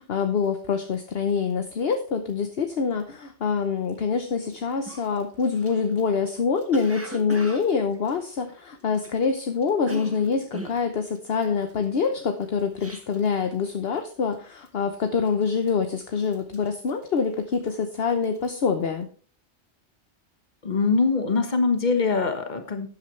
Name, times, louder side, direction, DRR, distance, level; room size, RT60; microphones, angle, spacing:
voice 1, 0.0-19.1, left 5 dB, 60° left, 6 dB, 1.1 m, -25 dB
Cough, 4.4-4.5 4.9-9.3 9.6-13.4 13.7-14.0 14.3-14.8 15.3-15.9 16.2-17.8 18.1-18.5, equal, 10° right, 1.3 m, -40 dB
voice 2, 20.6-22.9, left 4 dB, 40° left, 7 dB, 1.5 m, -23 dB
12.0 x 8.8 x 3.2 m, 0.42 s
omnidirectional pair, 1.2 m